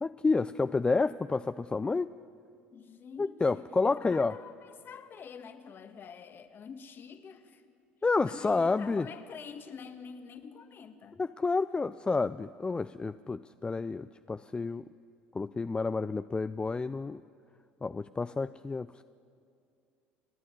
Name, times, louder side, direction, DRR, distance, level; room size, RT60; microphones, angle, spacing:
voice 1, 0.0-2.1 3.2-4.3 8.0-9.1 11.2-14.8 15.3-17.2 17.8-19.0, left 4 dB, 20° left, 12 dB, 0.4 m, -30 dB
voice 2, 2.7-3.7 4.0-7.6 8.2-11.2, left 6 dB, 40° left, 9 dB, 1.5 m, -47 dB
29.0 x 9.8 x 9.5 m, 2.4 s
hypercardioid pair, 70°, 5 cm